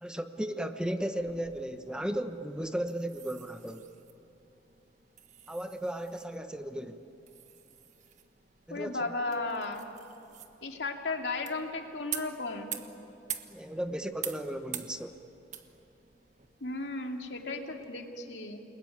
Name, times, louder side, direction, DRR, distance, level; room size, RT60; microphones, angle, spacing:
voice 1, 0.0-3.9 5.5-7.0 8.7-9.1 13.5-15.2, right 1 dB, 5° right, 7 dB, 0.9 m, -35 dB
sound 1, 1.0-17.9, right 10 dB, 45° right, 1.4 m, -47 dB
voice 2, 8.7-9.8 10.6-12.7 16.6-18.6, left 3 dB, 85° left, 3 dB, 2.5 m, -35 dB
29.5 x 20.5 x 9.4 m, 2.9 s
head